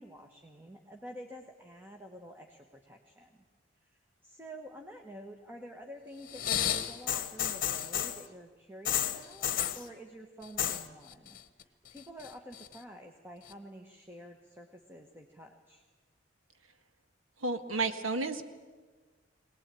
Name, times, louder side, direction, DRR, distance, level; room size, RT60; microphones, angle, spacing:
voice 1, 0.0-3.4 3.8-15.8, equal, 10° right, 3 dB, 1.2 m, -49 dB
sound 1, 6.3-8.2 8.8-9.8 10.4-10.8 11.1-11.6 12.0-12.7 13.5-13.6, left 10 dB, 45° left, 1.1 m, -32 dB
voice 2, 17.4-18.5, right 3 dB, 85° right, 9 dB, 1.5 m, -32 dB
22.5 x 19.0 x 9.1 m, 1.4 s
head